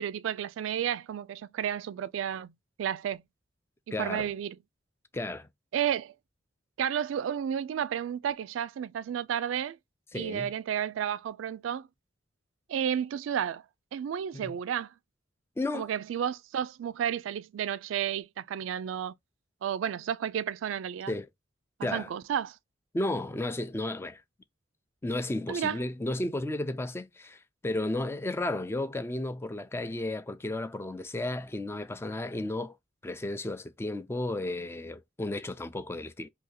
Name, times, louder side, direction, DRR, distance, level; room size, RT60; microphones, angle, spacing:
voice 1, 0.0-2.5 2.8-3.2 4.0-4.6 5.7-6.1 6.8-9.8 10.1-11.9 12.7-13.6 13.9-14.9 15.7-19.1 19.6-21.1 21.8-22.6 25.5-25.8, right 9 dB, 85° right, 0.3 m, -32 dB
voice 2, 3.9-4.3 5.1-5.5 10.1-10.5 14.3-14.5 15.6-15.9 21.1-21.3 21.8-22.1 22.9-24.2 25.0-32.8 33.0-36.3, left 2 dB, 15° left, 0.3 m, -33 dB
2.8 x 2.7 x 3.9 m
head